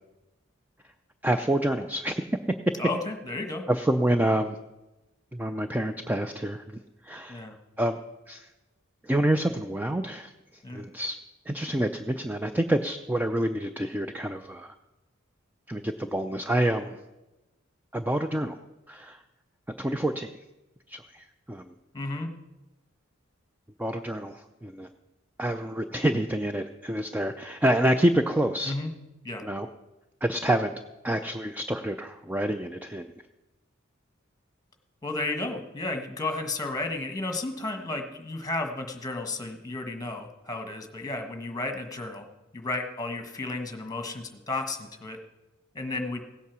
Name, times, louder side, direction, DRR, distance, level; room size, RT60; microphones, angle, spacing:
voice 1, 1.2-2.2 3.7-4.6 5.3-6.6 7.0-7.5 7.8-8.0 8.3-8.5 9.0-10.3 10.7-11.2 11.5-14.7 15.7-17.0 17.9-18.6 18.9-19.2 19.8-20.3 20.9-21.7 23.8-24.9 25.4-28.8 29.4-29.7 30.2-30.7 31.0-33.1, right 1 dB, 10° right, 7 dB, 0.4 m, -27 dB
voice 2, 2.8-3.6 7.3-7.6 10.6-10.8 21.9-22.3 28.7-28.9 29.2-29.4 35.0-42.2 42.5-45.2 45.7-46.2, left 2 dB, 20° left, 6 dB, 1.4 m, -33 dB
16.5 x 8.5 x 6.1 m, 1.0 s
head